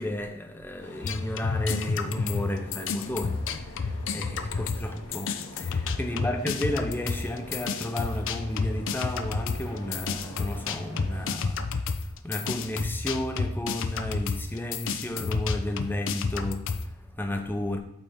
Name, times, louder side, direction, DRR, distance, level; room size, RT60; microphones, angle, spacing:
voice 1, 0.0-17.8, left 1 dB, 10° left, 0.6 m, -33 dB
sound 1, 0.8-11.4, left 1 dB, 80° left, 1.5 m, -46 dB
sound 2, 1.0-4.9 5.1-16.8, left 5 dB, 60° left, 0.5 m, -30 dB
8.4 x 3.4 x 4.3 m
head